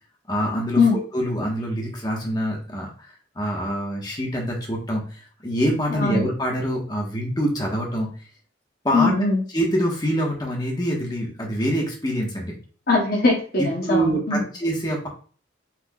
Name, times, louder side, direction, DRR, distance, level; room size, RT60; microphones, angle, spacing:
voice 1, 0.3-2.9 3.3-8.1 8.8-9.1 9.5-12.5 13.6-15.1, equal, 20° left, -2 dB, 1.3 m, -25 dB
voice 2, 5.9-6.2 8.9-9.4 12.9-14.5, left 3 dB, 50° left, -1 dB, 0.9 m, -21 dB
5.9 x 3.6 x 2.3 m, 0.41 s
head